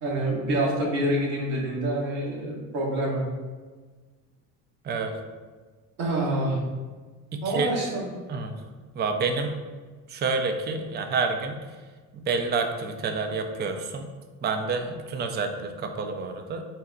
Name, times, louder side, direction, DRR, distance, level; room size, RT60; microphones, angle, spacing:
voice 1, 0.0-3.2 6.0-6.6 7.4-8.1, right 1 dB, 70° right, -3 dB, 1.3 m, -26 dB
voice 2, 7.3-7.7 8.3-8.5 8.9-9.6 10.1-11.6 12.1-14.1 14.4-16.6, right 4 dB, 25° right, 5 dB, 0.4 m, -28 dB
4.1 x 2.1 x 3.7 m, 1.4 s
hypercardioid pair, 70°, 46 cm